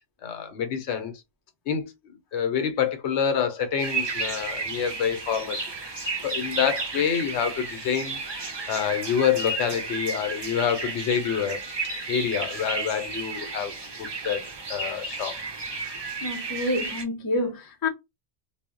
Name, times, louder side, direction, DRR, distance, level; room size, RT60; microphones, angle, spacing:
voice 1, 0.2-1.1 1.7-1.9 2.3-5.6 6.2-8.2 8.7-11.6 12.1-13.7 14.0-14.4 14.7-15.4, left 8 dB, 75° left, 0.9 m, -27 dB
sound 1, 3.8-17.0, right 3 dB, 40° right, 0.4 m, -33 dB
voice 2, 16.2-17.9, left 2 dB, 25° left, 0.5 m, -28 dB
2.1 x 2.0 x 3.6 m
omnidirectional pair, 1.2 m